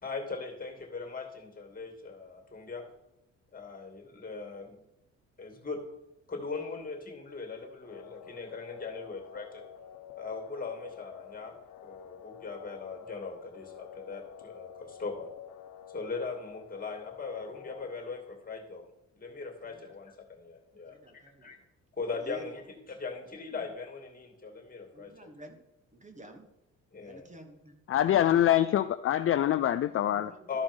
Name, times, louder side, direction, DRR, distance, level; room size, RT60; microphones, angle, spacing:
voice 1, 0.0-2.8 3.5-4.8 5.4-5.8 6.3-9.6 10.2-11.5 11.8-15.3 15.9-18.9 19.2-21.0 21.4-21.6 22.0-25.1 26.9-27.3 30.5-30.6, left 4 dB, 30° left, 3 dB, 2.7 m, -39 dB
sound 1, 7.8-17.9, left 10 dB, 85° left, 0.9 m, -49 dB
voice 2, 20.8-21.6 22.2-22.5 23.3-23.7 24.9-25.6 25.9-26.5 27.0-27.8 30.0-30.5, equal, 25° right, 5 dB, 1.5 m, -50 dB
voice 3, 27.9-30.3, left 11 dB, 45° left, 11 dB, 0.4 m, -25 dB
13.0 x 5.0 x 5.5 m, 0.87 s
cardioid pair, 90°, 30 cm